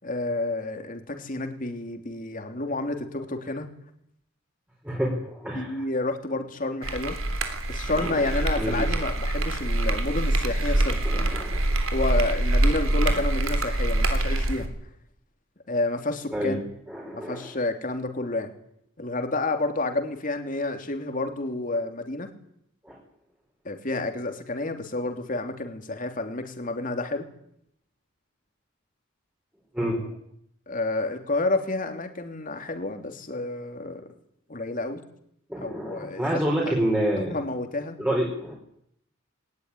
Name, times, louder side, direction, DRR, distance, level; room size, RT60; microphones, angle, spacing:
voice 1, 0.0-3.7 5.5-7.2 7.7-11.5 11.9-14.7 15.7-16.6 17.1-18.5 19.0-22.3 23.6-27.2 30.7-34.1 34.5-35.0 35.6-36.4 37.2-38.0, left 2 dB, 40° left, 5 dB, 3.1 m, -30 dB
voice 2, 4.8-5.8 7.9-8.3 8.6-8.8 11.0-11.6 16.3-16.6 16.9-17.5 22.8-23.0 29.7-30.1 35.5-37.3 38.0-38.5, equal, 10° right, -2 dB, 4.6 m, -28 dB
sound 1, 6.8-14.7, right 1 dB, 80° right, 3.5 m, -25 dB
21.0 x 19.0 x 9.9 m, 0.73 s
head